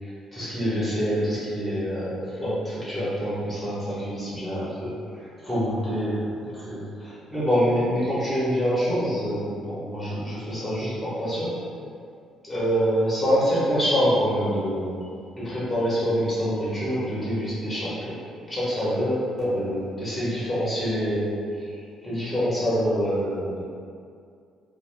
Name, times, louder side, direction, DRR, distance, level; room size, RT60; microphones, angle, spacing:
voice 1, 0.3-11.6 12.5-15.0 15.4-18.2 18.5-23.6, equal, ahead, -10 dB, 0.6 m, -26 dB
2.3 x 2.2 x 3.0 m, 2.3 s
cardioid pair, 175°, 0 cm